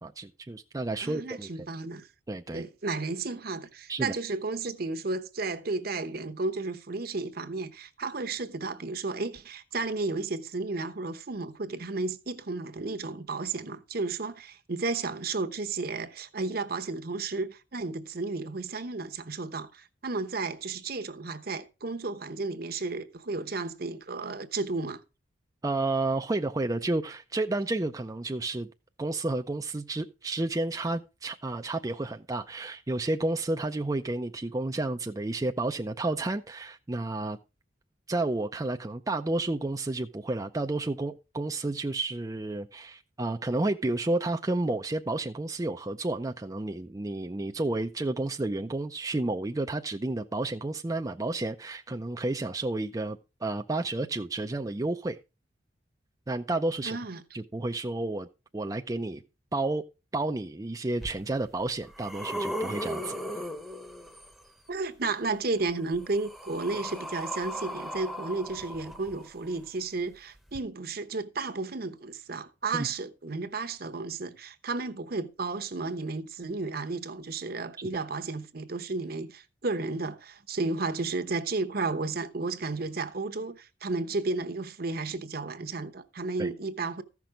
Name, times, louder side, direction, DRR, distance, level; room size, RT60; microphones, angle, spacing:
voice 1, 0.0-1.5 2.3-2.6 3.9-4.1 25.6-28.7 29.0-37.4 38.1-55.2 56.3-57.0 57.3-58.3 58.5-59.2 59.5-59.8 60.1-63.2 72.7-72.9 86.4-86.5, right 2 dB, 20° right, 0.4 m, -31 dB
voice 2, 1.0-2.1 2.5-25.0 56.8-57.2 64.7-87.0, right 3 dB, 55° right, 1.0 m, -33 dB
sound 1, 61.0-61.1 61.7-64.4 65.6-69.5 70.5-70.6, equal, ahead, 0.9 m, -37 dB
14.5 x 6.0 x 5.0 m
head